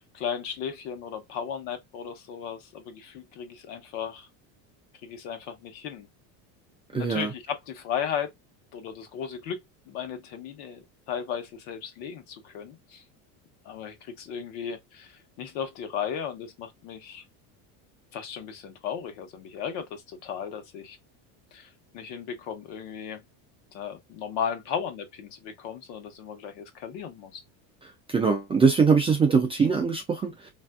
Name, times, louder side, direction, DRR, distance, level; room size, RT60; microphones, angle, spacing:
voice 1, 0.0-4.3 5.0-6.1 6.9-8.3 8.7-9.6 9.9-13.0 13.6-17.2 18.1-21.0 21.5-21.7 21.9-23.2 23.7-27.4, left 8 dB, 65° left, 1.0 m, -35 dB
voice 2, 6.9-7.3 27.8-30.5, right 5 dB, 15° right, 0.3 m, -22 dB
3.3 x 2.6 x 2.3 m
cardioid pair, 140°, 43 cm